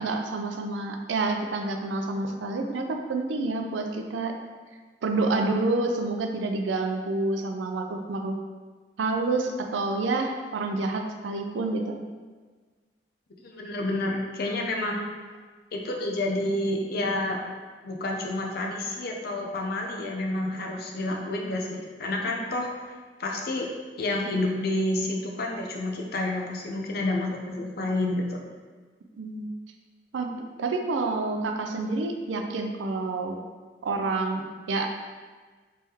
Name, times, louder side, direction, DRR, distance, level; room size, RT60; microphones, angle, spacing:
voice 1, 0.0-4.4 5.0-8.4 9.0-12.0 29.2-29.5 30.1-33.4 33.8-34.9, right 3 dB, 85° right, 4 dB, 0.4 m, -28 dB
voice 2, 13.4-15.1 15.7-17.4 17.8-23.7 24.0-28.5, left 1 dB, 55° left, 0 dB, 0.5 m, -29 dB
3.5 x 3.3 x 2.8 m, 1.4 s
head